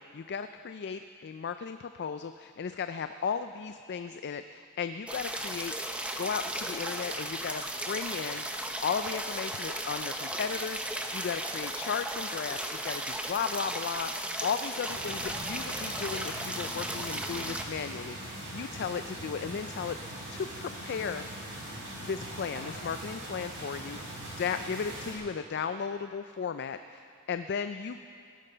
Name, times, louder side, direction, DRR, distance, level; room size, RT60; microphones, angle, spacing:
voice 1, 0.0-8.5 8.8-21.3 22.0-28.1, left 6 dB, 50° left, 9 dB, 0.4 m, -35 dB
sound 1, 5.1-17.6, right 1 dB, 5° right, 0.8 m, -35 dB
sound 2, 14.9-25.1, right 1 dB, 65° right, 4.5 m, -41 dB
16.0 x 12.0 x 5.6 m, 2.3 s
head